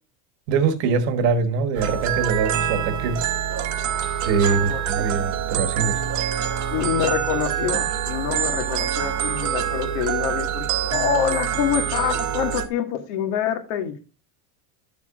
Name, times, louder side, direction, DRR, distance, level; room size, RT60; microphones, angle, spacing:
voice 1, 0.5-3.3 4.2-6.0, right 5 dB, 65° right, 1.4 m, -23 dB
sound 1, 1.7-12.7, right 10 dB, 45° right, 1.1 m, -25 dB
voice 2, 4.4-5.1 6.7-14.0, left 9 dB, 75° left, 1.9 m, -26 dB
12.0 x 7.1 x 2.4 m
cardioid pair, 150°, 41 cm